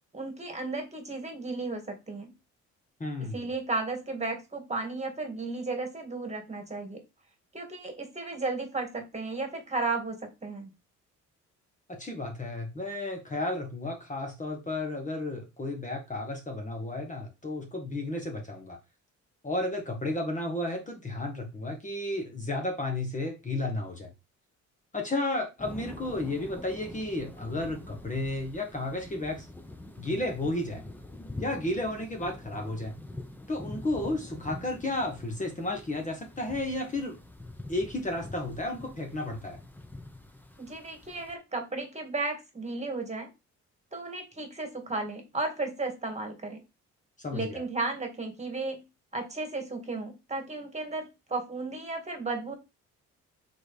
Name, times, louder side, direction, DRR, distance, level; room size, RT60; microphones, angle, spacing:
voice 1, 0.1-2.3 3.2-7.0 7.5-10.7 40.6-43.3 43.9-46.6 47.3-48.8 49.1-52.5, right 3 dB, 20° right, 2.2 m, -34 dB
voice 2, 3.0-3.3 11.9-18.8 19.4-24.1 24.9-29.5 30.0-30.8 31.4-32.9 33.5-37.2 37.7-39.6 47.2-47.6, left 2 dB, 25° left, 1.6 m, -33 dB
sound 1, 25.6-41.3, left 1 dB, 5° left, 0.9 m, -45 dB
4.4 x 4.3 x 5.0 m
cardioid pair, 90°, 30 cm